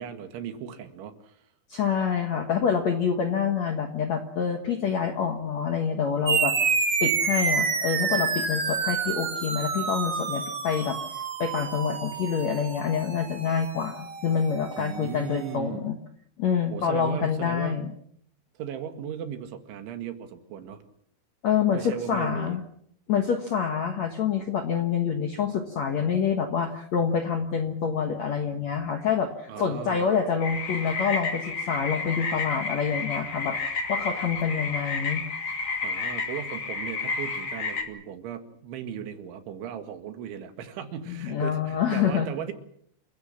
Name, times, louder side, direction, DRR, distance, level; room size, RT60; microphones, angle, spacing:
voice 1, 0.0-1.4 14.8-15.9 16.7-17.9 18.6-20.8 21.7-22.6 29.5-30.2 35.8-42.5, right 8 dB, 85° right, 8 dB, 4.3 m, -37 dB
voice 2, 1.7-6.5 7.0-11.0 11.4-16.0 16.4-17.9 21.4-22.6 23.1-35.2 41.1-42.3, left 7 dB, 65° left, 5 dB, 1.7 m, -27 dB
sound 1, 6.3-15.1, right 5 dB, 45° right, 1.4 m, -28 dB
sound 2, 30.4-37.8, left 4 dB, 35° left, 2.5 m, -31 dB
28.0 x 16.0 x 7.3 m, 0.69 s
omnidirectional pair, 5.3 m